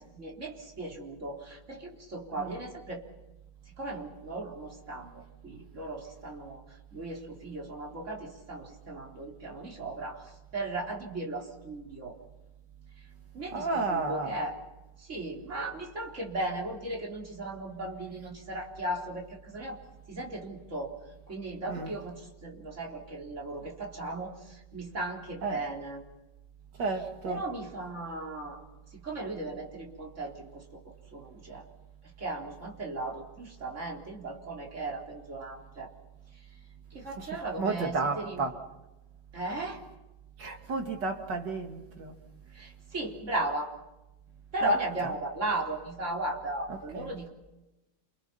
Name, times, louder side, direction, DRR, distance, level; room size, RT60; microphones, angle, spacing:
voice 1, 0.0-3.0 3.8-12.2 13.3-14.5 15.0-19.8 20.1-20.9 21.3-26.0 27.3-28.6 28.9-30.8 31.1-31.7 32.2-35.9 36.9-38.5 39.3-39.8 42.5-43.7 44.5-47.3, right 2 dB, 40° right, 4.3 m, -36 dB
voice 2, 13.5-14.4 21.7-21.9 25.4-25.6 26.8-27.4 37.2-37.3 37.6-38.6 40.4-42.2 44.6-44.7 45.0-45.1 46.7-47.1, right 3 dB, 70° right, 3.2 m, -32 dB
29.5 x 27.5 x 5.8 m
omnidirectional pair, 2.0 m